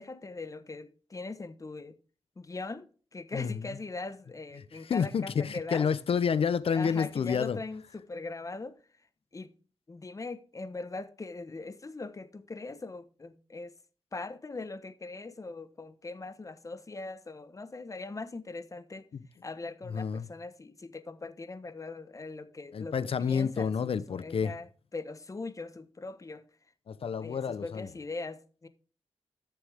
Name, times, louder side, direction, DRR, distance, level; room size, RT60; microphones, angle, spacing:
voice 1, 0.0-2.0 2.4-5.9 6.7-8.8 9.3-9.5 9.9-13.7 14.1-19.1 19.4-26.4 27.2-28.7, left 3 dB, 30° left, 1.2 m, -41 dB
voice 2, 4.9-7.6 19.9-20.2 22.7-24.5 26.9-27.9, left 6 dB, 65° left, 0.9 m, -29 dB
13.0 x 6.9 x 3.6 m
cardioid pair, 80°, 10 cm